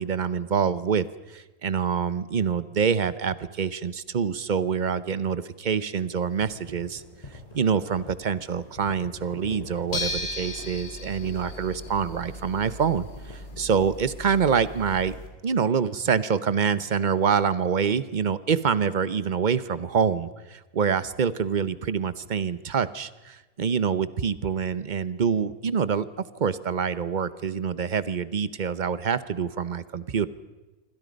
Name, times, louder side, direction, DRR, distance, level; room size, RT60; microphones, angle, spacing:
voice 1, 0.0-7.0 7.5-15.1 15.4-26.1 26.3-30.3, right 6 dB, 40° right, 15 dB, 0.8 m, -26 dB
sound 1, 6.3-13.7, left 1 dB, 25° left, 6.9 m, -44 dB
sound 2, 9.9-15.3, left 1 dB, 90° left, 3.3 m, -36 dB
27.5 x 24.0 x 5.3 m, 1.1 s
omnidirectional pair, 1.6 m